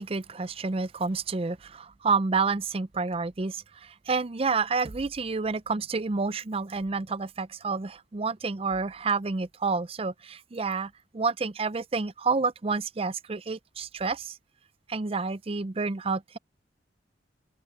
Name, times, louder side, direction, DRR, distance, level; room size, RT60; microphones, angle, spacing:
voice 1, 0.0-14.4 14.9-16.4, right 4 dB, 30° right, 0.5 m, -29 dB
open air
head